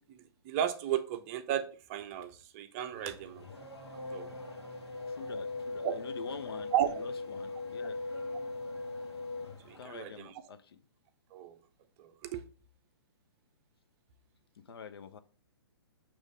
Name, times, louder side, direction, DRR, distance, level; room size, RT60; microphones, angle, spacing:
voice 1, 0.1-3.5 4.1-4.3 5.8-5.9 6.7-6.9 9.7-10.3 11.3-11.6 12.0-12.4, right 10 dB, 35° right, 0.6 m, -34 dB
Race car auto racing / Accelerating revving vroom, 2.9-10.2, left 3 dB, 90° left, 1.7 m, -40 dB
voice 2, 5.1-8.0 9.8-10.8 14.6-15.2, left 6 dB, 65° left, 0.7 m, -46 dB
6.4 x 3.1 x 5.1 m
hypercardioid pair, 130°, 13 cm